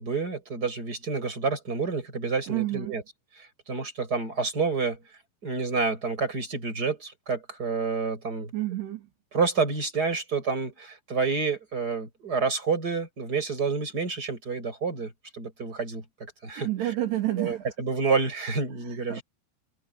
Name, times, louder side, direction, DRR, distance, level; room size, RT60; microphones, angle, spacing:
voice 1, 0.0-3.0 3.7-5.0 5.4-8.5 9.3-16.0 16.4-16.7 17.4-19.2, right 4 dB, 20° right, 7.0 m, -28 dB
voice 2, 2.5-3.0 8.5-9.1 16.6-17.7 18.7-19.2, right 15 dB, 80° right, 4.9 m, -30 dB
omnidirectional pair, 4.7 m